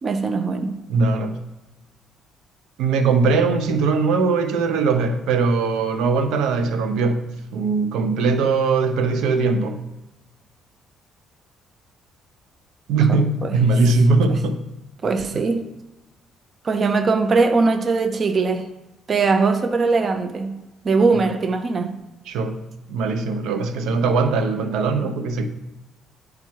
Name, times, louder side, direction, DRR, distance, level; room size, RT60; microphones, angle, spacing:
voice 1, 0.0-0.7 13.1-13.5 15.0-15.6 16.6-18.7 19.1-20.5 20.8-21.9, right 4 dB, 35° right, 7 dB, 0.6 m, -20 dB
voice 2, 0.9-1.4 2.8-7.3 7.5-9.8 12.9-14.6 22.3-22.6 22.9-25.5, right 4 dB, 85° right, 8 dB, 0.8 m, -20 dB
9.4 x 4.9 x 4.6 m, 1.0 s
cardioid pair, 145°, 0 cm